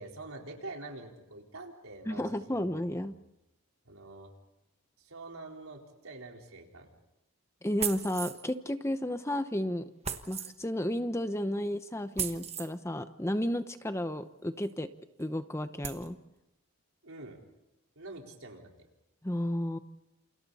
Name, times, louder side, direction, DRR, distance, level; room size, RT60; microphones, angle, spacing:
voice 1, 0.0-2.6 2.9-3.0 3.8-4.3 5.0-6.9 17.0-17.4 18.0-18.9, right 2 dB, 75° right, 1 dB, 4.3 m, -46 dB
voice 2, 2.1-3.1 7.6-9.9 10.3-14.9 15.2-16.2 19.2-19.8, left 1 dB, 10° left, 10 dB, 0.8 m, -32 dB
sound 1, 7.8-8.5 10.0-10.5 12.2-12.7 14.6-14.7 15.2-15.3 15.8-16.1, right 8 dB, 30° right, 1.2 m, -36 dB
29.0 x 28.5 x 4.2 m, 0.93 s
head